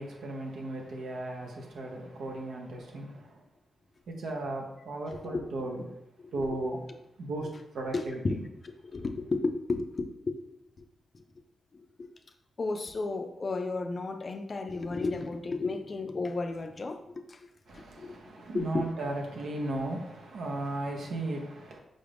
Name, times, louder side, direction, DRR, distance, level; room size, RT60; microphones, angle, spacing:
voice 1, 0.0-3.4 4.1-5.8 6.3-6.8 7.2-7.5 7.7-8.4 17.7-21.8, right 2 dB, 80° right, 0.8 m, -36 dB
voice 2, 7.9-8.4 8.6-10.3 10.8-10.9 11.1-11.2 11.7-12.1 12.6-17.0 17.3-17.5 17.7-18.1 18.5-18.8, left 3 dB, 35° left, 0.4 m, -33 dB
5.4 x 2.5 x 3.4 m
wide cardioid pair, 145°, 0 cm